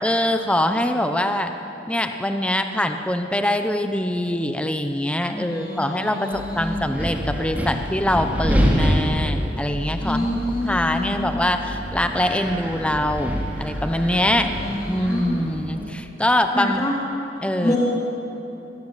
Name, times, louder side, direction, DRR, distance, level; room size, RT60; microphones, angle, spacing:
voice 1, 0.0-1.5 1.9-14.5 14.9-16.8 17.4-17.8, left 1 dB, 5° left, 6 dB, 1.0 m, -23 dB
voice 2, 5.3-6.9 9.9-11.5 14.3-15.9 16.5-17.0 17.3-17.8, left 1 dB, 20° left, -5 dB, 3.8 m, -28 dB
Wind, 6.3-15.8, equal, 10° right, 3.3 m, -26 dB
23.5 x 17.5 x 9.1 m, 2.9 s
head